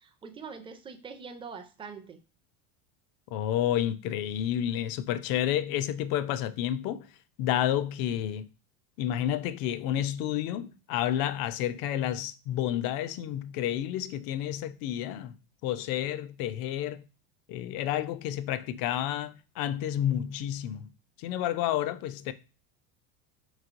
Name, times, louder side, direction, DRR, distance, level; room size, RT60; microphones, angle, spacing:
voice 1, 0.0-2.2, right 5 dB, 10° right, 0.4 m, -43 dB
voice 2, 3.3-7.1 7.4-8.5 9.0-15.3 15.6-17.0 17.5-20.9 21.2-22.3, left 11 dB, 50° left, 0.4 m, -30 dB
4.2 x 3.1 x 2.5 m
hypercardioid pair, 90°, 48 cm